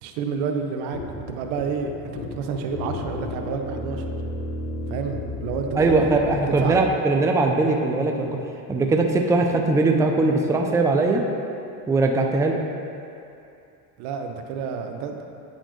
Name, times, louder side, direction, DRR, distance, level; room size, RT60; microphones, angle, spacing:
voice 1, 0.0-4.1 4.9-6.8 14.0-15.3, right 5 dB, 80° right, 5 dB, 0.7 m, -30 dB
sound 1, 0.9-6.8, left 2 dB, 60° left, 0.9 m, -32 dB
voice 2, 5.8-8.4 8.7-11.2 11.9-12.6, right 3 dB, 10° right, 2 dB, 0.4 m, -20 dB
9.0 x 4.2 x 3.1 m, 2.6 s
supercardioid pair, 85°, 42 cm